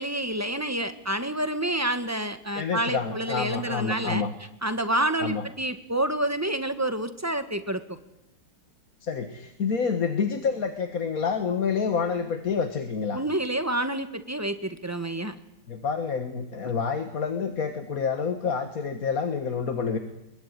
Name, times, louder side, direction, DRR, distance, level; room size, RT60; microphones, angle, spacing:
voice 1, 0.0-4.2 4.6-7.8 13.1-15.4, right 1 dB, 10° right, 9 dB, 1.4 m, -28 dB
voice 2, 2.6-4.3 5.2-5.5 9.0-13.2 15.7-20.0, left 5 dB, 50° left, 8 dB, 1.9 m, -28 dB
23.5 x 22.5 x 9.7 m, 0.91 s
omnidirectional pair, 2.0 m